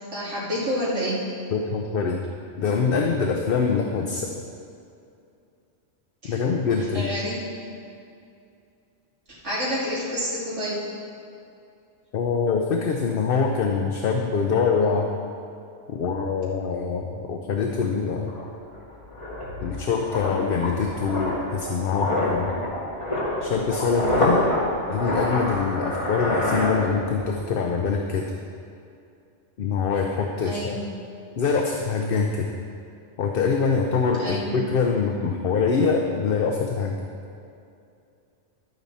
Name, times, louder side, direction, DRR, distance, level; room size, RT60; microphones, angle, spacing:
voice 1, 0.1-1.2 6.2-6.4 6.9-7.4 9.3-10.8 30.4-30.9 34.2-34.5, equal, 70° right, -8 dB, 3.1 m, -28 dB
voice 2, 1.5-2.2 2.6-4.3 6.3-7.1 12.1-15.1 15.9-18.3 19.6-22.5 23.4-24.4 24.9-28.3 29.6-30.8 31.4-32.5 33.2-37.0, left 5 dB, 55° left, 2 dB, 0.8 m, -24 dB
sound 1, 17.9-18.0 18.3-27.3 27.6-27.8, left 1 dB, 25° left, 2.4 m, -27 dB
12.0 x 9.0 x 4.2 m, 2.5 s
omnidirectional pair, 1.2 m